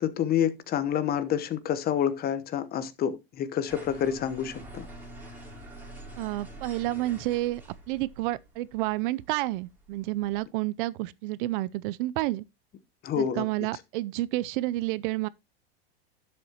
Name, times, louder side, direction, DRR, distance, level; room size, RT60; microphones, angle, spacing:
voice 1, 0.0-4.9 13.0-13.4, left 9 dB, 30° left, 0.9 m, -28 dB
sound 1, 3.7-10.4, right 1 dB, 5° right, 3.5 m, -46 dB
voice 2, 6.2-7.6 7.9-12.4 13.1-15.3, right 17 dB, 55° right, 0.5 m, -30 dB
10.5 x 7.6 x 2.8 m
supercardioid pair, 125°, 31 cm